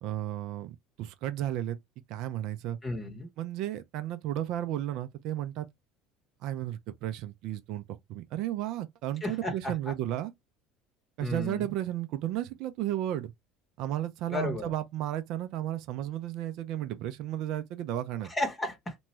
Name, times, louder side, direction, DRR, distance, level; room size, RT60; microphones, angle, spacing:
voice 1, 0.0-1.8 2.1-2.8 3.4-5.7 6.4-7.8 8.1-10.3 11.2-13.3 13.8-18.3, right 12 dB, 60° right, 0.5 m, -33 dB
voice 2, 2.8-3.3 9.2-9.7 11.2-11.7 14.3-14.7 18.3-19.0, left 2 dB, 25° left, 0.8 m, -33 dB
3.0 x 2.2 x 3.0 m
hypercardioid pair, 75°, 0 cm